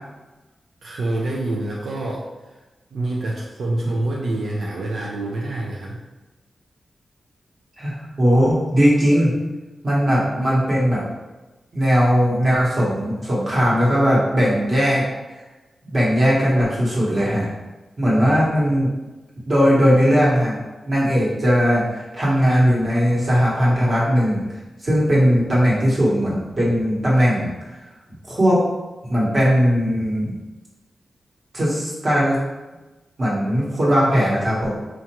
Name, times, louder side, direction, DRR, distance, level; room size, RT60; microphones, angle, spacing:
voice 1, 0.8-2.6 2.9-6.0 18.2-18.4, right 2 dB, 75° right, -3 dB, 0.4 m, -27 dB
voice 2, 7.8-9.3 9.8-11.0 11.7-15.0 15.9-17.5 18.0-18.9 19.4-20.6 20.9-24.4 24.8-27.5 28.3-28.6 29.1-30.3 31.5-32.4 33.2-34.7, equal, 40° right, -6 dB, 1.1 m, -18 dB
4.3 x 2.4 x 2.9 m, 1.1 s
wide cardioid pair, 130°, 0 cm